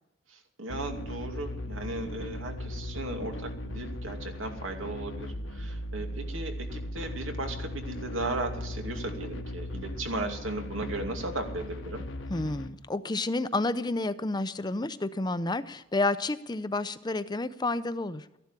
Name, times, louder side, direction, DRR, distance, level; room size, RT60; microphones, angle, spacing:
voice 1, 0.3-12.0, right 2 dB, 85° right, 4 dB, 2.5 m, -36 dB
sound 1, 0.7-12.7, left 1 dB, 75° left, 1.2 m, -38 dB
voice 2, 12.3-18.4, left 2 dB, 20° left, 13 dB, 0.6 m, -30 dB
14.0 x 11.5 x 7.4 m, 0.88 s
head